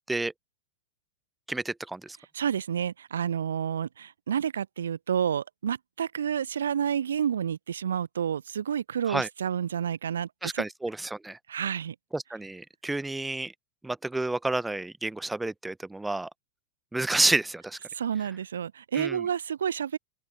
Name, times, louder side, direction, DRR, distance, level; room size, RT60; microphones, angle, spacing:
voice 1, 1.5-2.2 9.1-9.3 10.4-11.4 12.1-13.5 13.8-16.3 16.9-17.8 18.9-19.2, right 2 dB, 5° right, 0.8 m, -30 dB
voice 2, 2.3-10.6 11.5-12.0 17.9-20.0, right 8 dB, 65° right, 0.7 m, -30 dB
open air
figure-of-eight pair, 90°, 0 cm